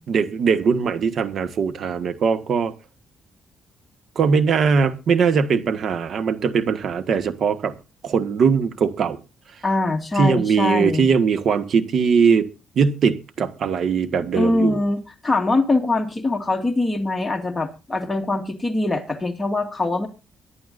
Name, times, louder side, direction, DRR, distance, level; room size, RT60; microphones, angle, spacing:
voice 1, 0.1-2.7 4.1-7.7 8.0-9.2 10.2-12.5 12.7-14.8, right 6 dB, 60° right, 1.6 m, -20 dB
voice 2, 9.6-11.1 14.3-20.1, left 2 dB, 15° left, 2.2 m, -23 dB
24.0 x 11.0 x 2.6 m
cardioid pair, 90°, 0 cm